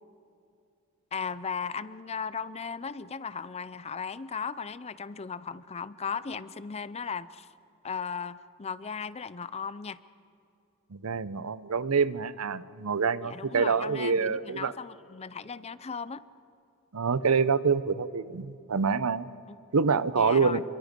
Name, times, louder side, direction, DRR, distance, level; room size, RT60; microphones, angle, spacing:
voice 1, 1.1-7.5 7.8-10.0 13.2-16.2 19.5-19.6 20.1-20.6, left 6 dB, 30° left, 16 dB, 0.5 m, -36 dB
voice 2, 10.9-14.7 16.9-19.3 19.7-20.6, right 5 dB, 85° right, 16 dB, 0.7 m, -26 dB
27.5 x 23.0 x 5.3 m, 2.7 s
head